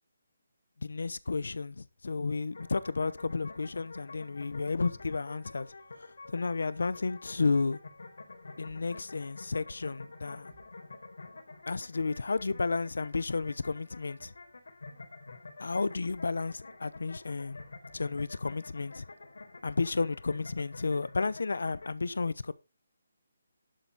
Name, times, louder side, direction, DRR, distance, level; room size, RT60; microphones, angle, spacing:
voice 1, 0.8-5.7 6.0-7.8 8.6-10.5 11.7-14.3 15.6-17.6 17.9-19.0 19.6-22.5, left 4 dB, 75° left, 0.8 m, -32 dB
sound 1, 2.5-21.9, left 3 dB, 90° left, 4.4 m, -49 dB
Thump thud, 4.9-5.3 6.8-7.1 8.6-9.0 10.5-10.8 12.3-12.7 14.2-14.5 16.0-16.4 17.9-18.2, right 1 dB, 5° right, 2.3 m, -61 dB
12.0 x 8.0 x 4.1 m
hypercardioid pair, 180°, 0 cm